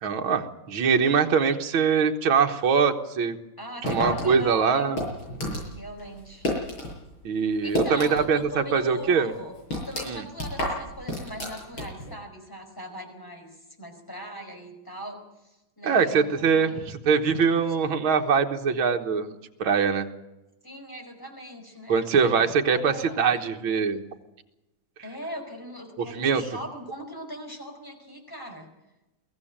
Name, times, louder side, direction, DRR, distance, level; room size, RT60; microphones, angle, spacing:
voice 1, 0.0-3.4 3.9-5.0 7.2-9.3 10.1-10.2 15.8-20.1 21.9-24.0 26.1-26.4, right 6 dB, 80° right, 4 dB, 2.2 m, -23 dB
voice 2, 3.6-5.0 5.7-6.5 7.6-9.6 9.9-16.7 17.4-17.7 20.6-22.3 22.7-23.4 25.0-28.7, equal, 10° left, 3 dB, 5.1 m, -40 dB
sound 1, 3.8-6.9 7.2-8.5 8.8-8.9 9.3-12.1, left 1 dB, 90° left, 8.7 m, -31 dB
23.0 x 15.5 x 8.9 m, 0.97 s
omnidirectional pair, 2.2 m